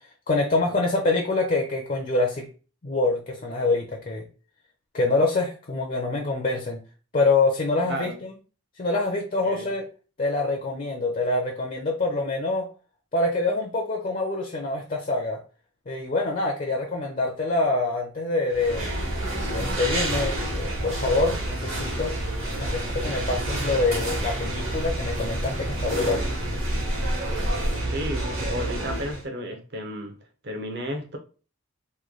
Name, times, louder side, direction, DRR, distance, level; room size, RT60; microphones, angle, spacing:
voice 1, 0.3-2.5 2.8-4.3 4.9-6.8 7.1-8.1 8.8-9.8 10.2-12.7 13.1-15.4 15.9-18.9 19.5-22.2 22.6-26.2, left 2 dB, 35° left, 0.5 m, -25 dB
voice 2, 7.9-8.2 9.4-9.7 27.8-30.1 30.4-31.2, equal, 50° right, 0.7 m, -33 dB
sound 1, 18.5-29.2, right 1 dB, 70° right, 1.3 m, -28 dB
3.1 x 2.3 x 3.6 m
head